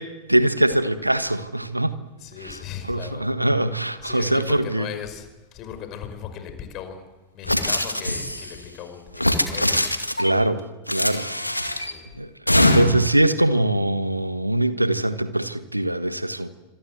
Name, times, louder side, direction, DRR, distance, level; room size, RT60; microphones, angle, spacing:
voice 1, 0.0-2.0 2.4-4.9 10.2-10.6 10.9-11.3 11.7-11.9 12.2-16.5, right 1 dB, 85° right, 12 dB, 1.5 m, -23 dB
voice 2, 2.2-3.2 4.0-7.0 7.3-10.0 11.7-12.1, left 8 dB, 35° left, 8 dB, 5.5 m, -37 dB
sound 1, 7.5-8.5 9.1-10.3 10.9-11.9 12.5-13.1, left 1 dB, 85° left, 2.2 m, -22 dB
28.0 x 26.0 x 8.0 m, 1.2 s
figure-of-eight pair, 90°, 0 cm